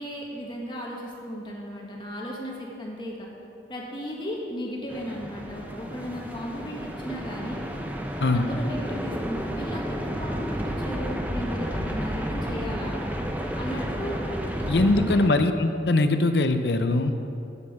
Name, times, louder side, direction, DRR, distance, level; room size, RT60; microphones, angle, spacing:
voice 1, 0.0-3.3 3.7-7.6 8.3-13.0 13.5-14.3 14.5-15.0, equal, 25° left, -2 dB, 1.7 m, -35 dB
sound 1, 4.9-15.3, equal, 10° right, 0.8 m, -31 dB
voice 2, 14.7-17.1, left 2 dB, 70° left, 8 dB, 0.7 m, -21 dB
8.7 x 8.7 x 7.1 m, 2.6 s
head